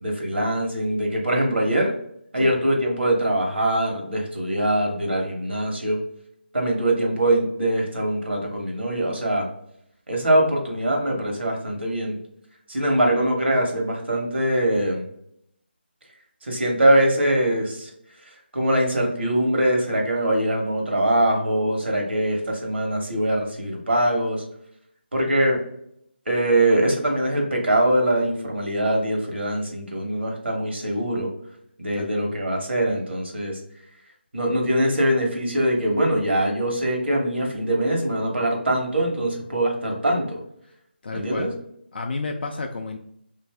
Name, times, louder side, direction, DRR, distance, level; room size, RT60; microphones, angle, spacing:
voice 1, 0.0-1.9 2.3-6.0 6.5-9.5 10.1-12.2 12.7-15.1 16.4-17.9 18.5-24.4 25.1-25.6 26.3-31.3 31.8-33.6 34.3-40.4 41.1-41.5, right 1 dB, 80° right, 1 dB, 1.0 m, -22 dB
voice 2, 41.0-41.5 41.9-43.0, left 3 dB, 60° left, 3 dB, 0.3 m, -31 dB
2.6 x 2.5 x 3.3 m, 0.73 s
figure-of-eight pair, 165°, 6 cm